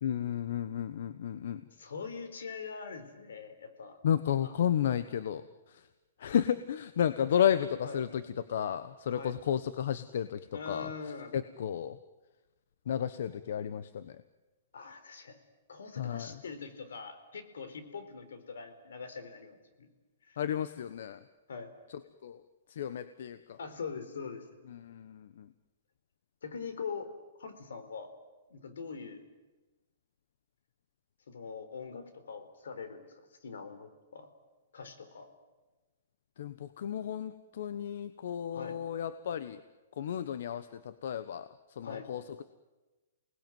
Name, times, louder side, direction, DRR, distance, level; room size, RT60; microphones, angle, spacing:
voice 1, 0.0-1.6 4.0-5.4 6.2-8.2 8.5-10.4 10.7-10.9 11.3-12.0 12.9-14.2 16.0-16.3 20.4-21.2 22.2-22.4 22.7-23.6 24.7-25.5 36.4-39.6 40.0-41.5 41.8-42.4, left 9 dB, 65° left, 12 dB, 1.1 m, -32 dB
voice 2, 1.8-4.0 4.4-4.5 7.8-8.0 9.1-9.3 10.5-11.3 14.7-15.4 15.7-19.9 20.3-20.4 21.5-21.7 23.6-24.4 26.4-27.1 27.4-28.1 28.5-29.2 31.3-34.3 34.7-35.3 38.5-38.8 41.8-42.1, left 5 dB, 85° left, 9 dB, 4.4 m, -43 dB
28.5 x 19.5 x 9.3 m, 1.2 s
hypercardioid pair, 155°, 0 cm